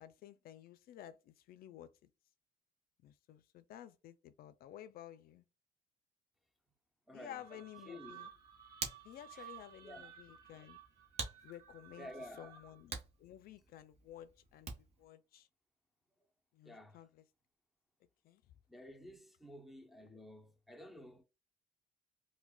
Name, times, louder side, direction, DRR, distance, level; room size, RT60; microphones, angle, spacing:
voice 1, 0.0-2.1 3.0-5.5 7.1-8.3 9.0-10.8 11.4-15.5 16.5-17.2 18.2-18.4, left 11 dB, 65° left, 0.4 m, -53 dB
voice 2, 7.1-8.2 9.3-9.5 9.8-10.1 12.0-12.5 16.6-17.0 18.7-21.2, left 1 dB, ahead, 0.6 m, -52 dB
sound 1, 7.2-12.9, right 10 dB, 65° right, 1.2 m, -56 dB
Hands, 8.2-15.1, right 4 dB, 40° right, 1.0 m, -49 dB
4.6 x 2.1 x 2.2 m
cardioid pair, 110°, 17 cm